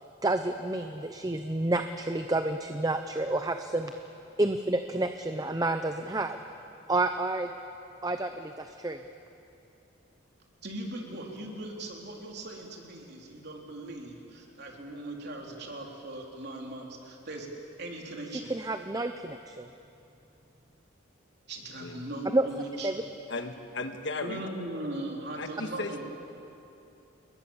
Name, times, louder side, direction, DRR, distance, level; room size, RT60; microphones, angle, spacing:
voice 1, 0.2-3.9 4.4-6.4 6.9-7.5 8.0-9.0 18.5-19.7 22.3-22.5 22.8-23.0, right 2 dB, 20° right, 7 dB, 0.7 m, -29 dB
voice 2, 10.6-17.5 17.8-18.5 21.5-23.0 24.2-26.0, right 1 dB, 55° right, 0 dB, 3.7 m, -39 dB
voice 3, 23.3-24.5 25.4-26.0, left 2 dB, 60° left, 6 dB, 1.6 m, -36 dB
29.0 x 21.5 x 7.2 m, 2.7 s
head